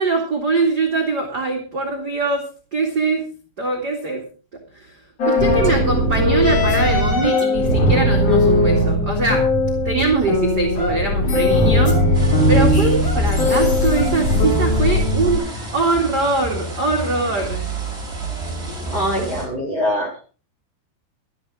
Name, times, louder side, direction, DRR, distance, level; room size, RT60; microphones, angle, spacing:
voice 1, 0.0-3.2 3.6-4.2 4.7-5.0 5.2-9.4 9.8-15.4 15.7-17.6, right 3 dB, 35° right, 0 dB, 1.9 m, -22 dB
sound 1, 5.2-15.4, left 1 dB, 40° left, 4.2 m, -18 dB
sound 2, 12.1-19.5, equal, 15° right, 5.6 m, -28 dB
voice 2, 18.9-20.2, equal, 20° left, -2 dB, 5.3 m, -23 dB
13.0 x 12.0 x 4.8 m, 0.38 s
omnidirectional pair, 4.9 m